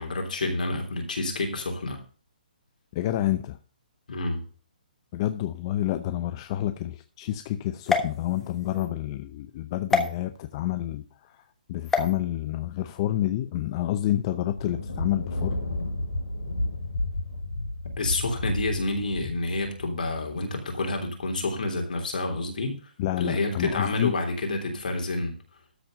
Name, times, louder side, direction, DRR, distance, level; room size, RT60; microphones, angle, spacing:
voice 1, 0.0-2.0 4.1-4.4 18.0-22.8 23.1-25.4, left 2 dB, 65° left, 3 dB, 3.3 m, -29 dB
voice 2, 2.9-3.6 5.1-11.4 11.7-15.6 23.0-24.1, left 13 dB, 35° left, 9 dB, 0.7 m, -29 dB
sound 1, 7.8-8.9 9.9-10.1 11.8-12.1, left 4 dB, 5° left, 1.2 m, -26 dB
Thunder, 14.4-21.1, left 1 dB, 90° left, 2.3 m, -32 dB
13.0 x 4.4 x 6.6 m, 0.39 s
figure-of-eight pair, 140°, 5 cm